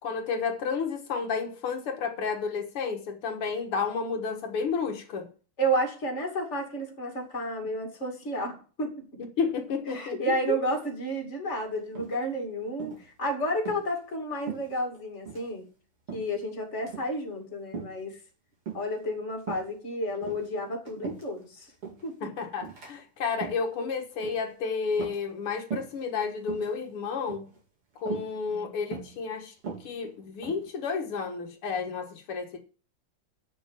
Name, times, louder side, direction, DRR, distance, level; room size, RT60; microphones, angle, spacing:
voice 1, 0.0-5.3 9.4-10.2 10.5-10.6 22.2-27.5 28.0-29.5 29.8-32.6, left 5 dB, 80° left, 2.5 m, -31 dB
voice 2, 5.6-9.2 9.9-15.7 16.1-18.2 18.7-21.7 22.0-22.3 28.5-28.7, right 1 dB, 30° left, 2.8 m, -31 dB
sound 1, 12.0-12.4 12.8-13.1 13.6-13.9 14.5-15.0 15.3-15.5 16.1-16.4 16.8-17.1 17.7-18.0 18.7-19.0 19.4-19.7 20.2-21.4 21.8-22.1 22.6-22.9 23.3-23.7 24.2-24.5 24.9-25.4 25.7-26.0 26.4-26.7 27.3-27.6 28.1-28.3 28.9-29.2 29.6-30.7, right 6 dB, 85° right, 5.0 m, -39 dB
8.3 x 7.0 x 7.4 m
omnidirectional pair, 2.4 m